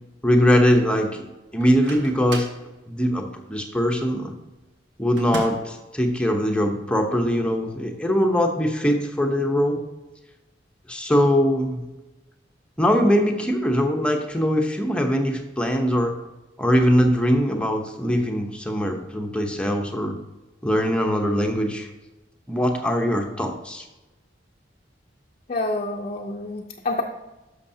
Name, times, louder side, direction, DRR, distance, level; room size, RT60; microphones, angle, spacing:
voice 1, 0.2-1.3 1.5-2.5 2.9-4.3 5.0-9.8 10.9-11.8 12.8-16.1 16.6-20.2 20.6-21.9 22.5-23.8, equal, 5° left, 3 dB, 0.9 m, -21 dB
Microwave oven, 1.6-2.6 5.2-5.8, right 2 dB, 85° right, 1.4 m, -34 dB
voice 2, 25.5-27.0, left 2 dB, 40° left, 0 dB, 0.6 m, -27 dB
11.0 x 6.6 x 2.8 m, 1.1 s
head